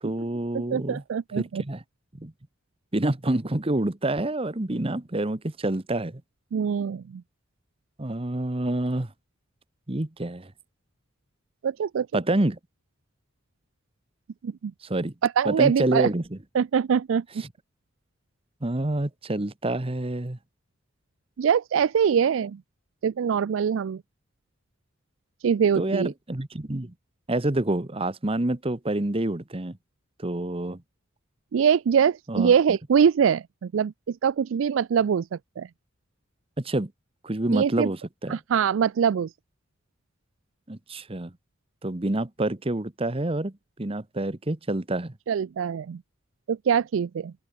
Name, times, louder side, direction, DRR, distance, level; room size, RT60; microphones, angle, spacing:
voice 1, 0.0-1.0 1.3-1.8 2.1-2.3 2.9-6.2 8.0-9.1 9.9-10.5 12.1-12.6 14.8-15.1 15.4-16.4 17.4-17.5 18.6-20.4 25.8-26.9 27.3-29.8 30.2-30.8 32.3-32.8 36.6-36.9 37.2-38.4 40.7-41.3 41.8-43.5 43.8-45.1, right 1 dB, 30° right, 1.1 m, -27 dB
voice 2, 0.7-1.6 6.5-7.2 11.6-12.1 14.4-14.7 15.2-16.1 16.5-17.2 21.4-22.6 23.0-24.0 25.4-26.1 31.5-35.7 37.5-37.9 38.3-39.3 45.3-46.0 46.5-47.3, right 7 dB, 80° right, 0.4 m, -23 dB
open air
head